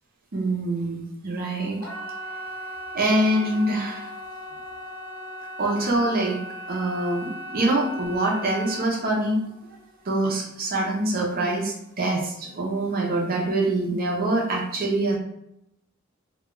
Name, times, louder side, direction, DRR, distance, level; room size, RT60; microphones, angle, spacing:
voice 1, 0.3-1.8 2.9-4.1 5.6-6.4 6.7-9.4 10.0-15.2, right 1 dB, 45° right, -1 dB, 0.5 m, -25 dB
sound 1, 1.7-12.6 12.9-13.4 13.8-13.9, right 1 dB, 80° left, 0.9 m, -38 dB
2.3 x 2.2 x 3.0 m, 0.79 s
head